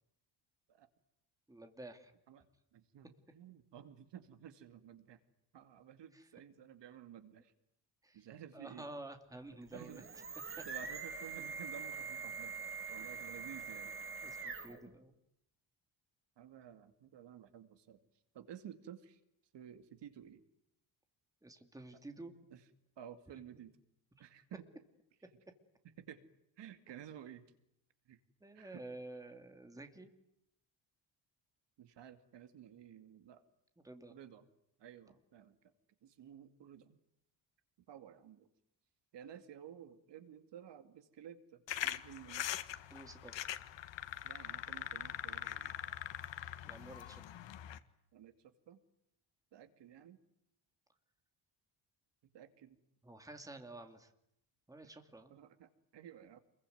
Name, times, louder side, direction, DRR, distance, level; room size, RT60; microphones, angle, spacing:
voice 1, 1.5-2.1 6.1-6.2 8.0-8.2 8.5-10.0 10.6-10.7 14.2-15.1 21.4-22.3 28.4-30.1 33.8-34.2 42.9-43.4 46.6-47.2 53.0-54.1 54.7-55.3, right 2 dB, 5° right, 6 dB, 2.6 m, -50 dB
voice 2, 2.7-5.2 5.5-7.5 8.1-8.9 9.7-10.1 10.6-12.5 12.9-13.9 16.4-18.0 18.3-19.2 19.5-20.4 21.9-22.7 23.0-23.8 24.2-24.7 25.2-25.4 25.8-26.2 26.6-27.5 28.1-28.2 28.5-28.8 31.8-33.4 34.1-34.5 34.8-35.7 36.0-37.0 37.9-38.5 39.1-42.5 44.2-45.7 48.1-48.8 49.5-50.2 52.3-52.8 54.8-55.0 55.3-56.4, right 9 dB, 60° right, 9 dB, 2.4 m, -53 dB
sound 1, 9.6-14.9, right 5 dB, 25° right, 3.2 m, -44 dB
sound 2, 41.7-47.8, left 12 dB, 65° left, 1.7 m, -42 dB
28.5 x 22.5 x 9.3 m, 0.79 s
cardioid pair, 170°, 47 cm